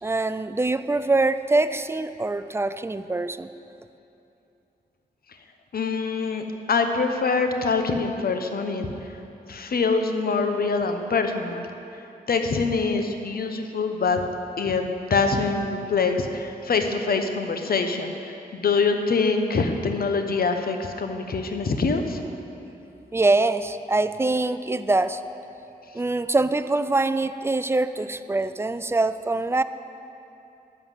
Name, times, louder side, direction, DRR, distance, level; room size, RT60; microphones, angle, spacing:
voice 1, 0.0-3.5 23.1-25.2 25.9-29.6, right 2 dB, 15° right, 12 dB, 0.4 m, -24 dB
voice 2, 5.7-8.9 9.5-11.7 12.3-14.2 14.6-22.2, left 4 dB, 65° left, 6 dB, 0.9 m, -24 dB
11.0 x 5.8 x 7.3 m, 2.8 s
cardioid pair, 70°, 16 cm